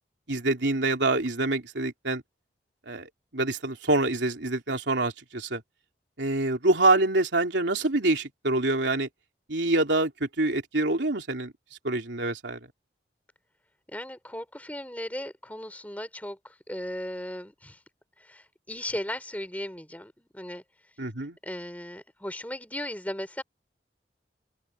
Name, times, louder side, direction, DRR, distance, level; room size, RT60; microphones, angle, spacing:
voice 1, 0.3-2.2 2.9-5.6 6.2-9.1 9.5-11.5 11.8-12.6 21.0-21.4, right 2 dB, 85° right, 3.2 m, -26 dB
voice 2, 13.9-17.8 18.2-20.6 21.4-23.4, left 1 dB, 10° left, 3.2 m, -37 dB
open air
head